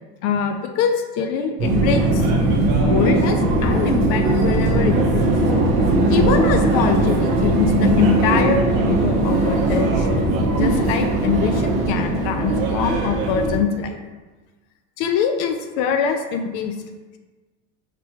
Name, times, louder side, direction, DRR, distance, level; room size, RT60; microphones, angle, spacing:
voice 1, 0.2-2.3 2.8-5.3 6.1-10.1 10.5-14.0 15.0-16.7, left 6 dB, 60° left, 6 dB, 0.5 m, -23 dB
Subway metro underground, 1.6-13.6, right 2 dB, 65° right, 1.0 m, -19 dB
5.9 x 2.2 x 3.0 m, 1.2 s
supercardioid pair, 105°, 35 cm